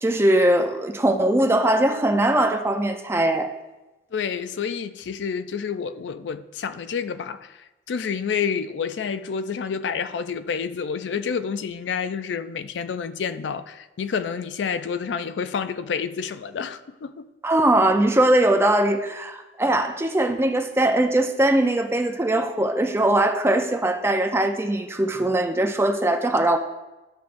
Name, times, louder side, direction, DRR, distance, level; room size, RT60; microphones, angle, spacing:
voice 1, 0.0-3.5 17.4-26.6, right 1 dB, 15° right, 0.5 m, -21 dB
voice 2, 4.1-7.5 7.9-17.2, left 6 dB, 70° left, 0.4 m, -29 dB
11.0 x 7.0 x 2.6 m
head